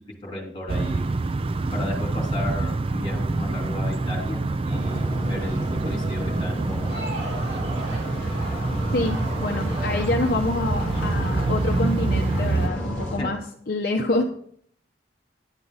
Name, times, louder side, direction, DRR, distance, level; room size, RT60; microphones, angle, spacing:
voice 1, 0.2-1.0 1.7-4.4 4.6-7.1 13.2-13.3, left 1 dB, 25° left, -1 dB, 3.2 m, -34 dB
sound 1, 0.7-12.7, right 2 dB, 30° right, 0.4 m, -26 dB
sound 2, 4.7-13.2, left 1 dB, 5° left, 3.3 m, -32 dB
Crowd, 6.7-12.5, right 1 dB, 55° right, 2.8 m, -39 dB
voice 2, 8.9-13.4 13.7-14.2, left 2 dB, 50° left, 2 dB, 0.8 m, -26 dB
10.5 x 9.2 x 4.0 m, 0.63 s
head